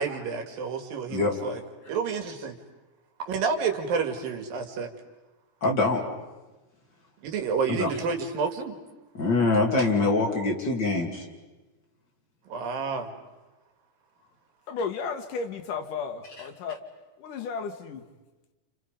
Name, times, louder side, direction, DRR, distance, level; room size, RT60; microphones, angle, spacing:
voice 1, 0.0-1.6 1.9-2.6 3.3-4.9 7.2-8.8 12.5-13.1, right 5 dB, 85° right, 5 dB, 3.7 m, -29 dB
voice 2, 5.6-6.0 7.7-7.9 9.2-11.3, left 3 dB, 30° left, 0 dB, 3.3 m, -24 dB
voice 3, 14.7-16.9 17.2-18.1, left 5 dB, 70° left, 6 dB, 2.9 m, -33 dB
29.5 x 29.5 x 5.3 m, 1.1 s
omnidirectional pair, 3.9 m